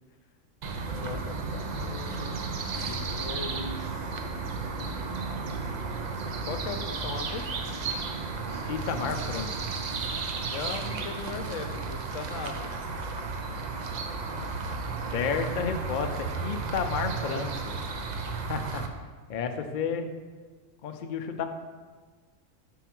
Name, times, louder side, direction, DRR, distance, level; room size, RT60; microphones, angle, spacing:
sound 1, 0.6-18.9, right 4 dB, 60° right, 0.4 m, -33 dB
voice 1, 0.8-4.2 6.4-7.5 10.4-12.8, left 4 dB, 80° left, 6 dB, 1.0 m, -39 dB
voice 2, 8.7-9.5 15.1-17.8 18.5-18.9 19.3-20.1 20.8-21.4, left 6 dB, 60° left, 6 dB, 0.5 m, -31 dB
4.6 x 4.5 x 5.9 m, 1.4 s
omnidirectional pair, 1.3 m